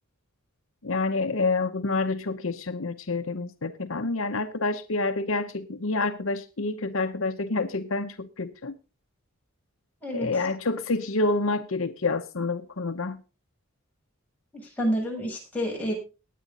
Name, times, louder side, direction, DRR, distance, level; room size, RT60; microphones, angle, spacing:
voice 1, 0.8-8.7 10.1-13.2, left 3 dB, 65° left, 0.9 m, -28 dB
voice 2, 14.8-15.9, equal, 5° left, 7.3 m, -28 dB
19.0 x 8.5 x 4.0 m
head